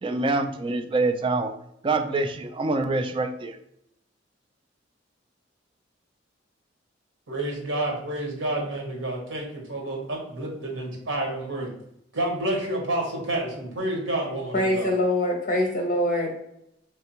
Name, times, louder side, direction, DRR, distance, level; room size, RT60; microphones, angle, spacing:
voice 1, 0.0-1.5 1.8-3.6, right 3 dB, 25° right, 7 dB, 0.3 m, -25 dB
voice 2, 7.3-11.7 12.1-14.9, right 1 dB, 75° right, 0 dB, 1.1 m, -29 dB
voice 3, 14.5-16.3, left 1 dB, 45° left, 1 dB, 0.9 m, -24 dB
3.4 x 3.3 x 3.0 m, 0.77 s
head